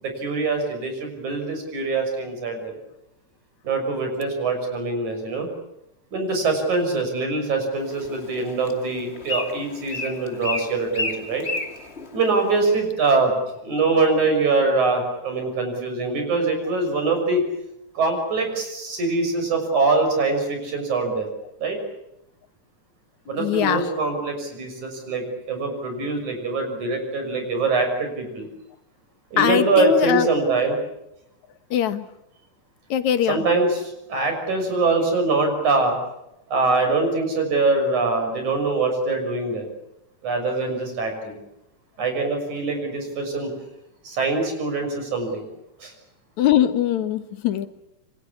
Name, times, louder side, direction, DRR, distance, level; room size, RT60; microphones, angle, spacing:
voice 1, 0.0-2.8 3.6-5.5 6.1-11.5 12.1-13.3 13.6-17.4 18.0-21.3 21.6-21.8 23.3-28.5 29.3-30.8 33.3-35.9 36.5-39.7 40.2-41.3 42.0-43.5 44.0-45.4 45.8-45.9, right 3 dB, 80° right, 5 dB, 7.8 m, -23 dB
Bird, 7.7-12.9, left 3 dB, 20° left, 2.6 m, -33 dB
voice 2, 23.4-23.9 29.4-30.3 31.7-32.1 32.9-33.5 46.4-47.7, left 10 dB, 75° left, 11 dB, 2.7 m, -21 dB
27.5 x 24.5 x 8.6 m, 0.86 s
omnidirectional pair, 3.4 m